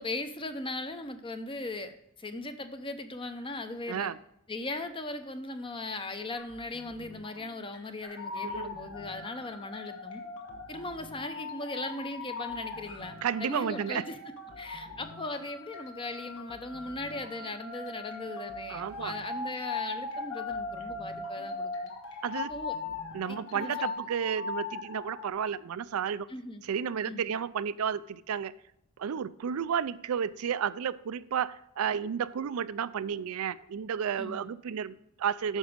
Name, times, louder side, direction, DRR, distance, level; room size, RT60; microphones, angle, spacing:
voice 1, 0.0-4.1 4.5-10.2 10.7-14.2 14.6-21.7 22.5-22.8 23.3-23.7 26.3-26.6 27.1-27.3 34.2-34.5, left 2 dB, 25° left, 8 dB, 0.7 m, -38 dB
voice 2, 3.9-4.2 8.4-8.8 13.2-14.0 18.7-19.1 22.2-22.5 23.1-26.3 26.6-28.5 29.0-35.6, right 7 dB, 80° right, 15 dB, 0.4 m, -32 dB
sound 1, 6.4-24.5, left 1 dB, 85° left, 1.4 m, -53 dB
sound 2, 8.0-25.3, left 3 dB, 60° left, 1.8 m, -40 dB
9.4 x 6.2 x 5.1 m, 0.78 s
head